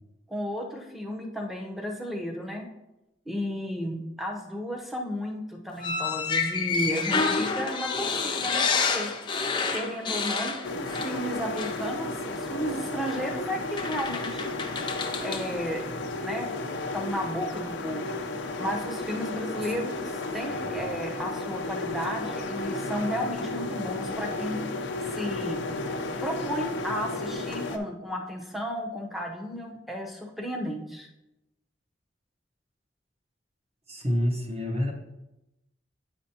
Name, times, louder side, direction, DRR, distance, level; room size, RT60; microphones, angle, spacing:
voice 1, 0.3-2.6 3.3-9.1 9.7-14.5 15.2-18.2 18.6-24.6 25.0-25.6 26.2-31.1, equal, ahead, -1 dB, 0.8 m, -33 dB
sound 1, 5.8-11.3 11.6-11.8 13.0-13.2 13.8-15.5, left 4 dB, 25° left, 0.6 m, -29 dB
sound 2, 10.6-27.8, left 2 dB, 85° left, 0.6 m, -33 dB
voice 2, 33.9-34.9, equal, 35° right, 0 dB, 1.1 m, -27 dB
8.6 x 5.1 x 2.9 m, 0.92 s
head